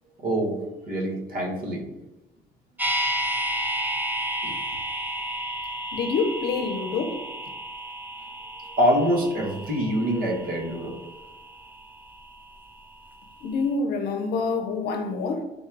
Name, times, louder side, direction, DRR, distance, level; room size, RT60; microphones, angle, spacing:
voice 1, 0.2-0.5 0.9-1.8 4.4-4.5 8.8-11.0, equal, 60° right, 1.3 m, -25 dB
sound 1, 2.8-12.8 13.1-13.2, equal, 10° right, 0.7 m, -32 dB
voice 2, 5.9-7.2 13.4-15.4, left 4 dB, 70° left, 0.7 m, -26 dB
4.2 x 2.3 x 4.6 m
cardioid pair, 110°, 17 cm